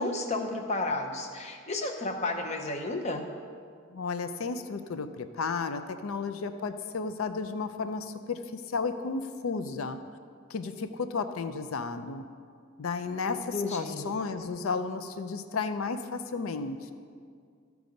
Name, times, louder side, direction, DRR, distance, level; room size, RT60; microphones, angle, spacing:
voice 1, 0.0-3.3 13.3-14.0, left 2 dB, 30° left, 4 dB, 0.7 m, -32 dB
voice 2, 3.9-10.0 10.5-12.2 12.8-16.9, left 4 dB, 85° left, 10 dB, 0.5 m, -33 dB
14.0 x 4.7 x 5.2 m, 2.1 s
head